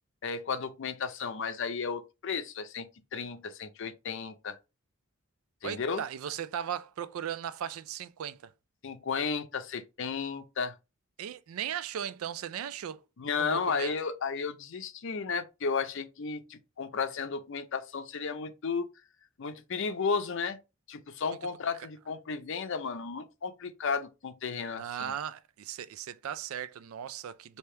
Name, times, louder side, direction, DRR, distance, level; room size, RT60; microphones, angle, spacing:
voice 1, 0.2-4.6 5.6-6.0 8.8-10.7 13.2-18.9 19.4-20.6 20.9-25.1, left 5 dB, 65° left, 0.5 m, -33 dB
voice 2, 5.6-8.5 11.2-13.0 13.4-13.9 24.7-27.6, right 9 dB, 90° right, 0.4 m, -37 dB
3.3 x 2.8 x 4.4 m
head